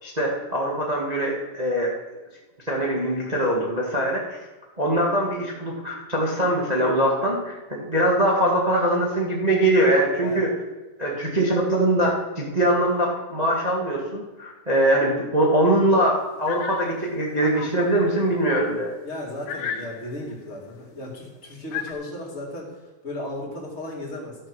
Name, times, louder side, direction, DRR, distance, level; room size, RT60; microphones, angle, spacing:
voice 1, 0.0-1.9 2.7-4.4 4.8-10.5 11.0-18.9, right 1 dB, 75° right, -3 dB, 0.3 m, -22 dB
sound 1, 16.5-18.5 19.0-19.1 19.4-20.4 21.7-21.9, left 8 dB, 85° left, 2.6 m, -35 dB
voice 2, 19.0-22.7 23.0-24.4, left 1 dB, 20° left, -3 dB, 2.3 m, -35 dB
13.0 x 6.8 x 6.2 m, 1.2 s
omnidirectional pair, 4.0 m